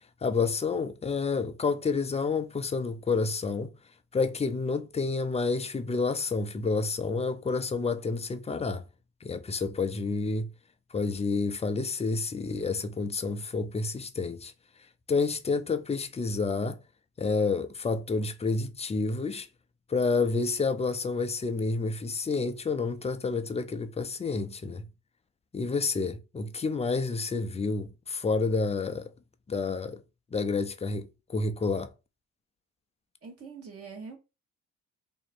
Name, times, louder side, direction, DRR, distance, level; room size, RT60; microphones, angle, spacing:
voice 1, 0.2-3.8 4.1-8.8 9.2-10.5 10.9-14.5 15.1-16.8 17.2-19.5 19.9-24.9 25.5-29.1 29.5-30.0 30.3-31.9, left 4 dB, 20° left, 0.4 m, -29 dB
voice 2, 33.2-34.2, right 5 dB, 40° right, 1.2 m, -43 dB
2.9 x 2.6 x 4.2 m
cardioid pair, 115°, 34 cm